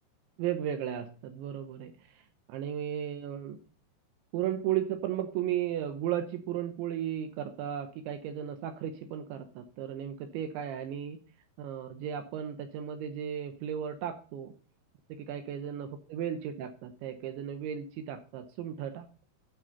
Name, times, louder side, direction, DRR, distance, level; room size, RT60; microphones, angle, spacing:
voice 1, 0.4-1.9 2.5-3.6 4.3-11.2 11.6-14.5 15.3-19.2, right 10 dB, 75° right, 7 dB, 3.1 m, -35 dB
13.0 x 6.3 x 5.4 m, 0.39 s
omnidirectional pair, 5.8 m